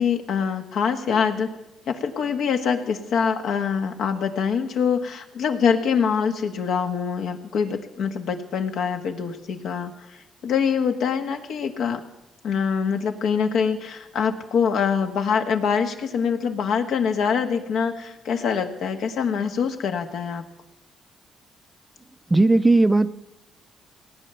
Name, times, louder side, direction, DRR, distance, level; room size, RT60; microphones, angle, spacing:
voice 1, 0.0-1.5 1.9-12.0 12.4-20.5, left 6 dB, 75° left, 5 dB, 1.5 m, -24 dB
voice 2, 22.3-23.1, right 2 dB, 15° right, 13 dB, 0.5 m, -17 dB
18.5 x 9.2 x 6.9 m, 0.95 s
cardioid pair, 90°, 0 cm